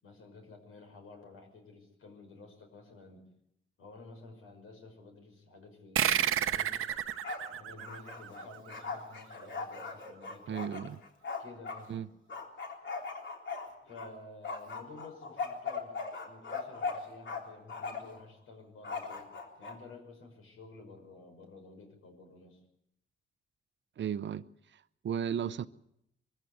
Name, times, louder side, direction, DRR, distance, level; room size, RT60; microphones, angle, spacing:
voice 1, 0.0-3.3 3.8-6.9 7.5-10.6 11.4-12.1 13.8-16.0 16.3-19.3 19.6-22.6, left 3 dB, 85° left, 5.8 m, -52 dB
sound 1, 6.0-9.0, right 10 dB, 85° right, 1.0 m, -31 dB
Bark, 6.9-7.5 7.8-11.8 12.3-14.1 14.4-17.4 17.7-18.2 18.8-19.8, left 4 dB, 60° left, 3.7 m, -39 dB
voice 2, 10.5-11.0 11.9-12.1 24.0-24.4 24.7-25.7, right 8 dB, 60° right, 0.7 m, -35 dB
23.5 x 15.0 x 9.4 m
cardioid pair, 120°, 21 cm